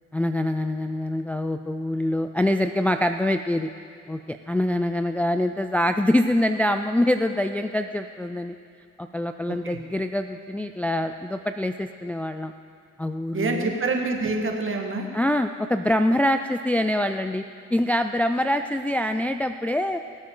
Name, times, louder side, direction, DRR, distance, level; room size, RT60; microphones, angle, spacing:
voice 1, 0.1-3.7 4.1-8.6 9.0-12.5 13.0-13.7 15.1-17.4 17.7-20.0, left 1 dB, 5° left, 7 dB, 0.3 m, -24 dB
voice 2, 9.5-9.8 13.3-15.1, right 3 dB, 45° right, 2 dB, 1.8 m, -27 dB
21.5 x 8.5 x 3.9 m, 2.2 s
cardioid pair, 90°, 30 cm